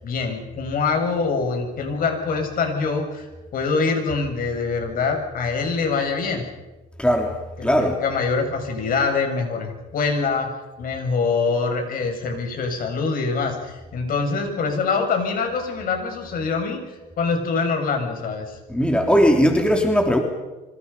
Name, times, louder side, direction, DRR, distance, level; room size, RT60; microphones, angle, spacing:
voice 1, 0.0-6.4 7.6-10.5 10.8-16.8 17.2-18.6, left 4 dB, 55° left, 4 dB, 6.8 m, -24 dB
voice 2, 7.0-7.3 7.6-7.9 18.7-20.2, equal, 5° left, 2 dB, 3.4 m, -18 dB
27.5 x 25.0 x 5.6 m, 1.1 s
cardioid pair, 110°, 17 cm